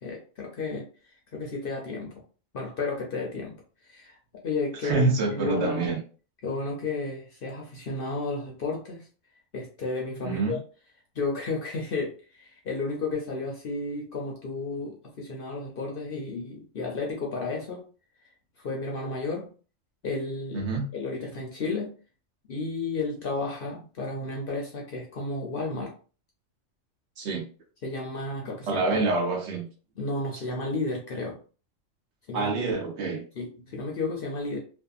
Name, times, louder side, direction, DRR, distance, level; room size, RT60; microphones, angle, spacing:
voice 1, 0.0-2.1 2.5-3.6 3.8-4.2 4.4-5.1 5.3-5.9 6.4-9.1 9.5-10.6 11.1-17.8 18.6-19.5 20.0-21.9 22.5-25.9 27.8-29.1 30.0-31.4 32.3-32.5 33.3-34.6, left 3 dB, 55° left, -1 dB, 0.6 m, -32 dB
voice 2, 4.8-6.0 10.2-10.6 20.5-20.9 27.2-27.4 28.7-29.7 32.3-33.2, right 3 dB, 60° right, 1 dB, 0.9 m, -26 dB
2.6 x 2.5 x 2.3 m, 0.39 s
omnidirectional pair, 1.4 m